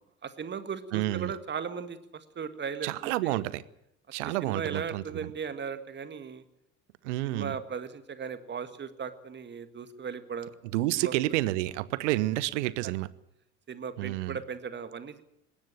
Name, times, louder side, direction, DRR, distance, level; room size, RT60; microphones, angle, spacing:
voice 1, 0.0-3.4 4.2-6.4 7.3-10.5 10.9-11.1 12.8-12.9 13.7-15.2, right 6 dB, 25° right, 11 dB, 1.8 m, -37 dB
voice 2, 0.9-1.3 2.8-3.6 4.1-5.3 7.0-7.5 10.7-13.1 14.0-14.4, right 17 dB, 60° right, 19 dB, 1.1 m, -29 dB
20.5 x 16.5 x 9.0 m, 0.79 s
figure-of-eight pair, 65°, 41 cm